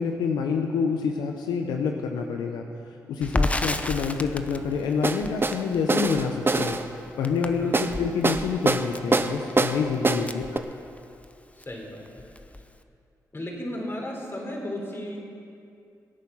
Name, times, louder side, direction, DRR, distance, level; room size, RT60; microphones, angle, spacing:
voice 1, 0.0-2.7 3.1-6.8 7.2-10.6, left 5 dB, 90° left, 3 dB, 0.8 m, -27 dB
Crackle, 3.2-11.3 11.6-11.7 12.1-12.8, left 2 dB, 20° left, 0.9 m, -33 dB
sound 1, 5.0-5.6 5.9-6.8 7.7-7.9 8.2-8.9 9.1-9.8 10.0-10.2 10.6-10.7, right 3 dB, 30° right, 0.9 m, -23 dB
voice 2, 11.6-12.2 13.3-15.2, left 1 dB, 35° left, 0 dB, 4.3 m, -35 dB
23.0 x 8.8 x 5.6 m, 2.5 s
supercardioid pair, 45°, 7 cm